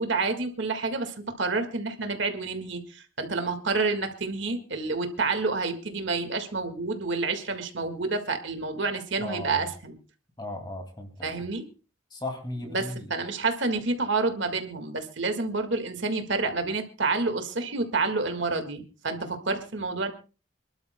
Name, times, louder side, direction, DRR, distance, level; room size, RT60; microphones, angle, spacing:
voice 1, 0.0-10.0 11.2-11.6 12.7-20.1, right 3 dB, 65° right, 6 dB, 1.8 m, -29 dB
voice 2, 9.2-9.7 10.4-11.4 12.1-13.1, left 2 dB, 20° left, 4 dB, 2.3 m, -36 dB
27.5 x 12.0 x 2.2 m, 0.35 s
head